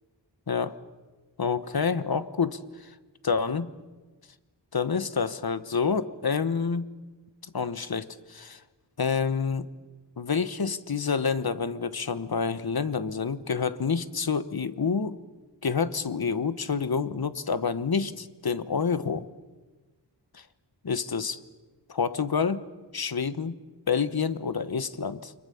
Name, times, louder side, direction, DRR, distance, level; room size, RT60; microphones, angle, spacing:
voice 1, 0.5-0.8 1.4-2.9 3.2-3.7 4.7-6.9 7.4-8.6 9.0-9.7 10.2-15.2 15.6-19.3 20.3-20.5 20.8-21.4 21.9-22.6 22.9-23.6 23.9-25.3, left 5 dB, 55° left, 13 dB, 1.3 m, -28 dB
29.5 x 25.0 x 7.1 m, 1.3 s
wide cardioid pair, 75°, 43 cm